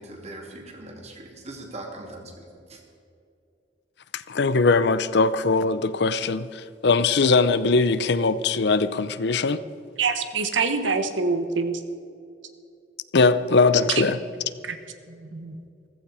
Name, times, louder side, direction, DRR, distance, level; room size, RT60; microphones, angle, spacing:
voice 1, 0.0-2.8, right 2 dB, 35° right, 1 dB, 2.6 m, -40 dB
voice 2, 4.1-9.6 13.1-14.2, left 4 dB, 65° left, 14 dB, 0.6 m, -21 dB
voice 3, 10.0-11.8 14.7-14.8 15.3-15.6, right 4 dB, 90° right, 8 dB, 1.2 m, -25 dB
15.0 x 14.5 x 4.9 m, 2.6 s
head